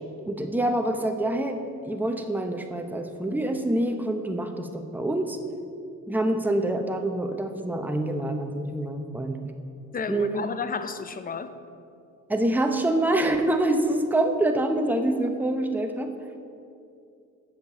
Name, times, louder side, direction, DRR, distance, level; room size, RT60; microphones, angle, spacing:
voice 1, 0.3-5.4 6.1-9.5 10.1-10.5 12.3-16.1, right 1 dB, 5° right, 5 dB, 0.8 m, -26 dB
voice 2, 9.9-11.5, left 5 dB, 30° left, 11 dB, 0.6 m, -32 dB
7.8 x 6.8 x 7.0 m, 2.5 s
cardioid pair, 90°, 30 cm